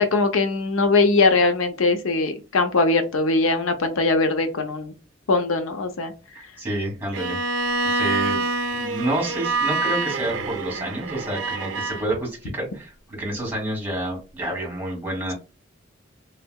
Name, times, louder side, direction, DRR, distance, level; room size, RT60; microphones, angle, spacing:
voice 1, 0.0-4.9 5.3-6.1 6.4-6.5, left 3 dB, 85° left, 8 dB, 0.6 m, -21 dB
voice 2, 6.3-7.4 7.8-8.4 8.7-15.3, right 1 dB, 10° right, -2 dB, 1.5 m, -29 dB
Bowed string instrument, 7.1-12.0, right 3 dB, 70° right, 0.4 m, -26 dB
3.3 x 2.7 x 2.3 m, 0.32 s
head